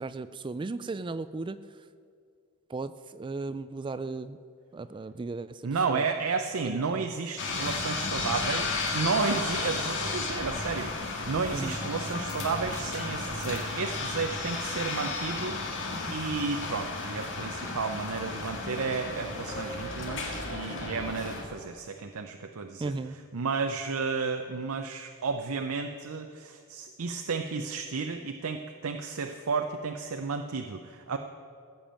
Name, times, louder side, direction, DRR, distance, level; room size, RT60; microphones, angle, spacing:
voice 1, 0.0-1.6 2.7-4.4 4.7-5.6 5.9-6.0 6.7-7.0 11.5-11.8 22.8-23.1, right 3 dB, 20° right, 14 dB, 0.3 m, -35 dB
voice 2, 5.6-31.2, right 4 dB, 65° right, 6 dB, 0.6 m, -32 dB
sound 1, 7.4-21.4, left 3 dB, 55° left, 1.9 m, -33 dB
15.5 x 7.0 x 7.5 m, 2.2 s
head